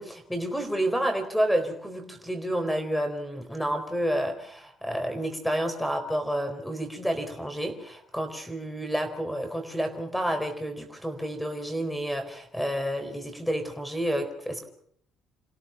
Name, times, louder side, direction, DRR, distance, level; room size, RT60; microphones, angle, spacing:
voice 1, 0.0-14.6, equal, ahead, 8 dB, 4.2 m, -30 dB
28.5 x 17.0 x 5.7 m, 0.63 s
cardioid pair, 140°, 0 cm